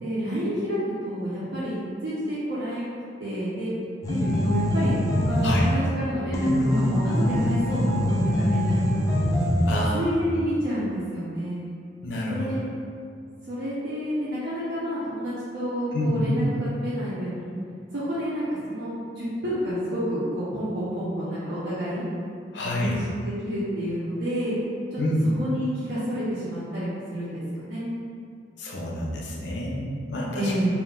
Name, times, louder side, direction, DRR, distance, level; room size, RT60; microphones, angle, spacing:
voice 1, 0.0-2.9 3.2-3.7 4.1-5.0 5.3-8.7 9.0-9.4 9.9-11.6 12.3-12.6 13.5-16.4 16.8-17.5 17.9-22.0 22.6-24.6 24.9-25.0 25.4-27.8 30.4-30.7, equal, 70° right, -10 dB, 0.6 m, -29 dB
sound 1, 4.0-5.8 6.3-9.8, equal, 20° left, 0.3 m, -23 dB
voice 2, 9.7-10.2 12.0-12.5 15.9-16.4 22.5-23.0 25.0-25.3 28.6-30.5, left 1 dB, 75° left, -3 dB, 0.5 m, -28 dB
2.4 x 2.1 x 3.6 m, 2.3 s
head